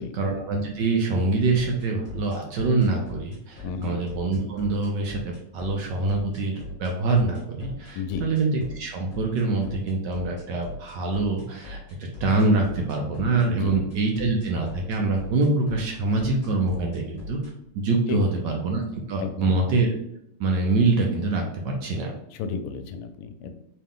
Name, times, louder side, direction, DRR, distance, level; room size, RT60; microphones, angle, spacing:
voice 1, 0.0-17.4 17.7-18.8 19.1-19.9 20.4-22.1, right 3 dB, 70° right, 1 dB, 1.1 m, -25 dB
sound 1, 1.5-17.5, left 2 dB, 30° left, 1.0 m, -39 dB
voice 2, 3.6-4.0 7.9-8.2 13.5-13.7 18.1-18.2 19.2-19.6 22.3-23.5, left 5 dB, 80° left, 8 dB, 1.5 m, -32 dB
4.4 x 3.2 x 3.7 m, 0.78 s
omnidirectional pair, 2.4 m